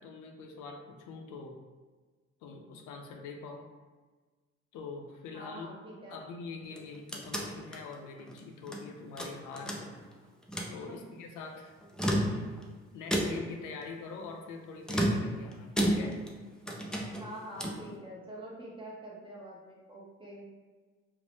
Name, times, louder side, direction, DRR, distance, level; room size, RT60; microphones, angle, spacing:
voice 1, 0.0-1.6 2.4-3.7 4.7-5.7 6.1-9.8 10.7-11.7 12.9-16.2, left 4 dB, 85° left, 3 dB, 0.5 m, -44 dB
voice 2, 5.3-6.3 10.9-11.0 17.2-20.5, right 1 dB, 15° right, -5 dB, 0.8 m, -45 dB
sound 1, 6.6-8.8 9.2-10.1 10.4-10.8 11.8-12.7 13.1-13.6 14.8-16.4 16.7-17.9, equal, 5° left, 0.3 m, -32 dB
2.6 x 2.0 x 3.2 m, 1.3 s
cardioid pair, 90°, 30 cm